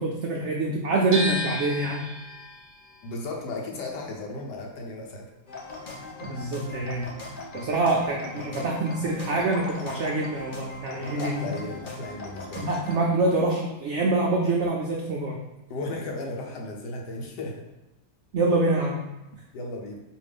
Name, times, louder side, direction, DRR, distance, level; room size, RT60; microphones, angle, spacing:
voice 1, 0.0-2.1 6.2-7.1 7.5-11.4 12.6-15.4 18.3-19.0, right 2 dB, 75° right, -1 dB, 0.6 m, -25 dB
sound 1, 1.1-7.1 7.4-8.7, left 1 dB, 10° right, 1.0 m, -36 dB
voice 2, 3.0-5.3 11.0-12.7 15.7-17.6 19.5-20.0, left 2 dB, 85° left, 0 dB, 1.4 m, -35 dB
sound 2, 5.5-13.0, left 3 dB, 60° left, 0.5 m, -40 dB
5.0 x 2.5 x 3.4 m, 1.0 s
omnidirectional pair, 1.8 m